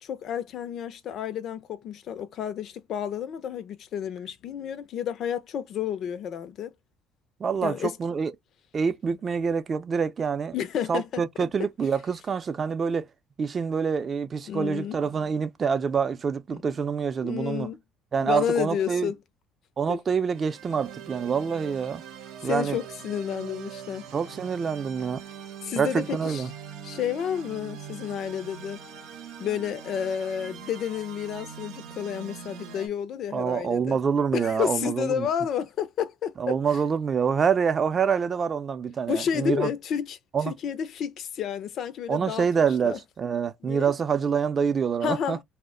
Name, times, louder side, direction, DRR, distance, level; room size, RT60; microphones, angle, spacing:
voice 1, 0.0-6.7 7.6-8.0 10.5-11.2 14.5-15.0 16.5-16.6 17.2-17.8 18.2-19.2 19.9-20.0 22.4-24.1 25.6-26.4 26.8-28.8 29.4-34.0 34.3-36.8 39.1-40.2 40.5-43.0 43.6-43.9 45.0-45.4, left 8 dB, 60° left, 0.4 m, -31 dB
voice 2, 7.4-8.3 8.7-10.5 10.9-13.1 13.4-17.7 18.1-19.1 19.8-22.0 22.4-22.8 24.1-25.2 25.8-26.5 33.3-35.3 36.4-39.7 40.3-40.5 42.1-45.4, right 6 dB, 40° right, 0.4 m, -26 dB
sound 1, 20.3-32.9, right 8 dB, 80° right, 0.7 m, -42 dB
2.1 x 2.0 x 3.7 m
supercardioid pair, 85°, 0 cm